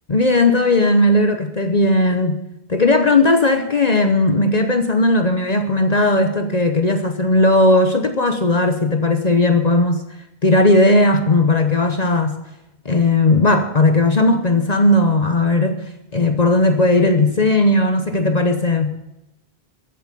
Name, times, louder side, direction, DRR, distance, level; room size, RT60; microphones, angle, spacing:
voice 1, 0.1-2.4 2.7-10.0 10.4-12.4 12.8-15.8 16.1-18.9, left 2 dB, 40° left, 1.0 m, -16 dB
14.5 x 8.4 x 6.8 m
omnidirectional pair, 1.1 m